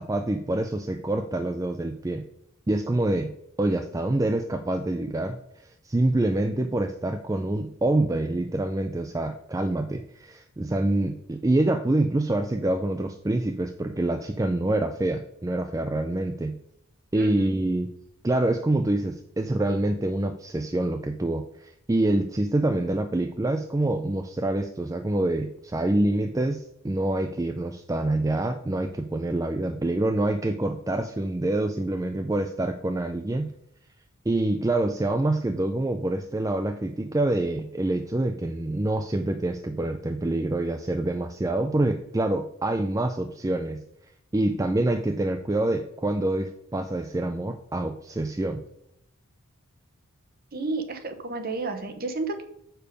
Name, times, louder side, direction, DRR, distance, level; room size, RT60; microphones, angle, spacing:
voice 1, 0.0-2.3 2.7-16.6 17.1-17.9 18.2-33.5 34.3-43.8 44.3-48.6, right 2 dB, 15° right, 6 dB, 0.3 m, -26 dB
voice 2, 17.1-17.6 50.5-52.4, right 3 dB, 40° right, 8 dB, 1.0 m, -31 dB
6.8 x 6.8 x 5.2 m, 0.77 s
head